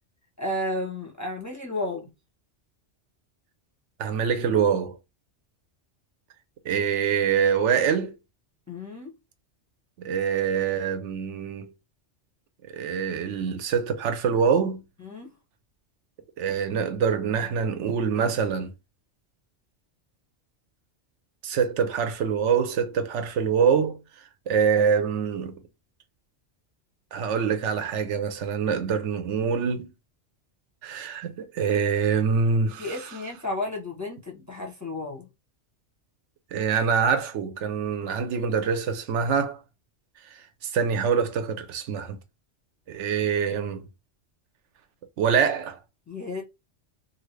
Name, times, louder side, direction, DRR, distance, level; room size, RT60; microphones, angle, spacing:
voice 1, 0.4-2.1 8.7-9.1 15.0-15.3 32.8-35.3 46.1-46.4, left 1 dB, 20° left, 0.6 m, -32 dB
voice 2, 4.0-5.0 6.6-8.1 10.0-11.7 12.6-14.8 16.4-18.7 21.4-25.6 27.1-29.9 30.8-33.1 36.5-39.6 40.2-42.2 42.9-43.9 45.2-45.8, right 6 dB, 85° right, 0.9 m, -25 dB
2.7 x 2.6 x 3.1 m
omnidirectional pair, 1.2 m